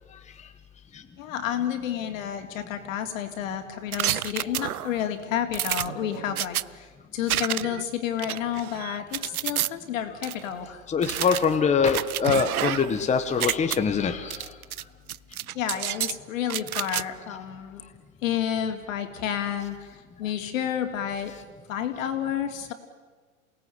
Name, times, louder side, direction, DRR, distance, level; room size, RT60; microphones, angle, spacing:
voice 1, 1.2-6.9 7.1-10.8 11.1-11.3 15.5-17.8 18.2-21.4 21.7-22.7, left 10 dB, 65° left, 6 dB, 3.5 m, -30 dB
sound 1, 3.9-5.0 5.5-6.6 7.3-7.8 8.2-9.7 10.2-10.3 11.0-13.0 13.3-13.8 14.3-14.8 15.1-16.2 16.5-17.0, right 12 dB, 85° right, 0.7 m, -29 dB
voice 2, 10.9-14.5 16.9-17.0, left 6 dB, 15° left, 6 dB, 1.6 m, -24 dB
28.5 x 18.0 x 9.6 m, 1.4 s
hypercardioid pair, 110°, 43 cm